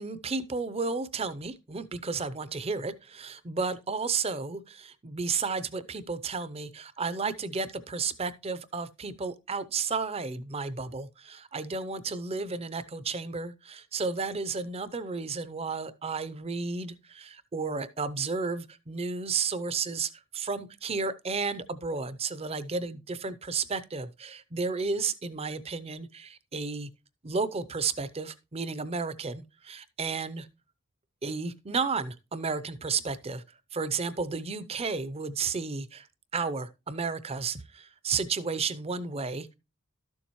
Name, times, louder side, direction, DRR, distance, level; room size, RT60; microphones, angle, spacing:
voice 1, 0.0-26.9 27.2-30.5 31.2-33.4 33.7-36.1 36.3-39.5, right 4 dB, 25° right, 0.6 m, -32 dB
12.5 x 7.1 x 3.0 m
head